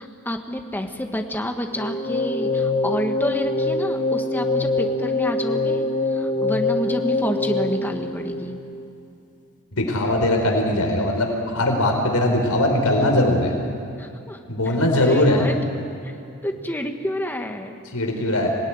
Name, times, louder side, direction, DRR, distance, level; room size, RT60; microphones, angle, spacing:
voice 1, 0.0-8.6 14.0-14.4 14.6-15.6 16.4-17.8, left 1 dB, 10° left, 4 dB, 1.6 m, -29 dB
sound 1, 1.7-8.9, left 2 dB, 35° left, 1.4 m, -24 dB
voice 2, 9.7-13.5 14.5-15.4 17.9-18.5, left 1 dB, 80° left, 2 dB, 4.4 m, -20 dB
26.0 x 18.5 x 9.7 m, 2.6 s
head